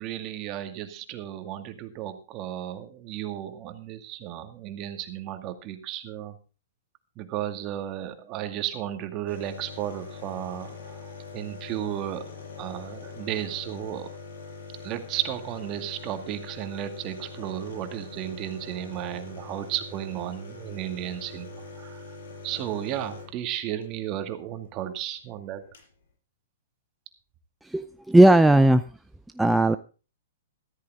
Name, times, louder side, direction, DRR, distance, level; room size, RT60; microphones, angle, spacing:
voice 1, 0.0-6.3 7.2-12.2 12.6-14.1 14.8-22.0 22.4-25.6, right 12 dB, 35° right, 9 dB, 2.2 m, -34 dB
sound 1, 9.3-23.9 25.2-25.3 25.5-25.9, left 4 dB, 70° left, 6.9 m, -43 dB
voice 2, 27.6-28.8 29.4-29.8, right 1 dB, 5° right, 10 dB, 0.6 m, -17 dB
14.0 x 13.5 x 3.7 m, 0.34 s
hypercardioid pair, 120°, 0 cm